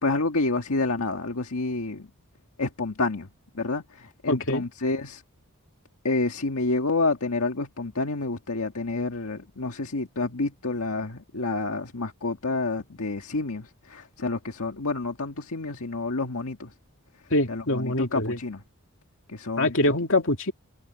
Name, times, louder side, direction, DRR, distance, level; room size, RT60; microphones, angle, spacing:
voice 1, 0.0-2.1 2.6-3.3 3.5-5.2 6.0-16.7 17.5-18.6 19.3-19.7, left 3 dB, 85° left, 1.7 m, -29 dB
voice 2, 4.3-4.6 17.3-18.4 19.6-20.5, left 1 dB, 65° left, 2.8 m, -24 dB
head